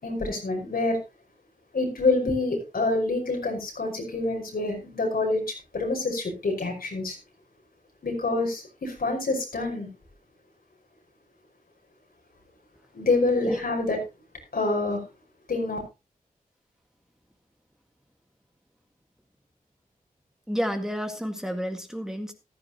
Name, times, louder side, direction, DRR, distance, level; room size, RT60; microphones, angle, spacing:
voice 1, 0.0-1.0 1.7-7.2 8.0-9.9 12.9-14.0 14.5-15.0 15.5-15.8, left 2 dB, 75° left, 2 dB, 5.5 m, -26 dB
voice 2, 20.5-22.3, equal, 5° right, 5 dB, 1.9 m, -30 dB
15.0 x 13.0 x 3.0 m, 0.28 s
wide cardioid pair, 90°, 15 cm